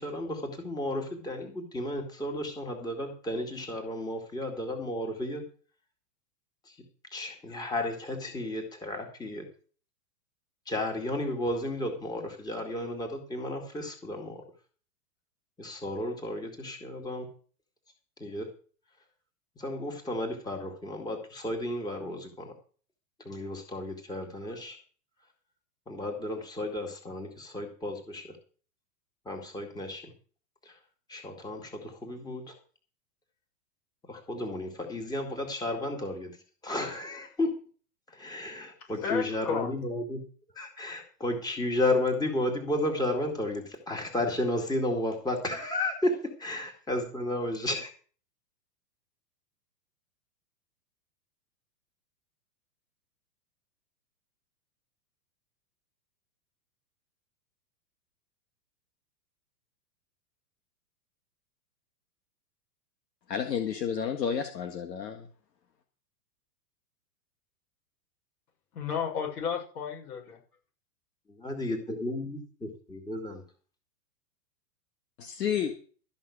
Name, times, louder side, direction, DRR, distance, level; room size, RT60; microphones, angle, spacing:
voice 1, 0.0-5.4 6.7-6.8 7.1-9.5 10.7-14.4 15.6-17.3 18.2-18.5 19.6-22.5 23.2-24.8 25.9-28.4 29.3-30.1 30.6-30.7 31.1-32.5 34.1-36.3 36.6-37.5 38.1-40.2 40.6-47.9 71.3-73.4, left 1 dB, 10° left, 3 dB, 2.0 m, -33 dB
voice 2, 39.0-39.7 68.7-70.4, left 7 dB, 65° left, 0 dB, 6.7 m, -32 dB
voice 3, 63.3-65.3 75.2-75.8, left 8 dB, 80° left, 6 dB, 1.8 m, -31 dB
13.5 x 5.9 x 8.5 m, 0.41 s
hypercardioid pair, 135°, 48 cm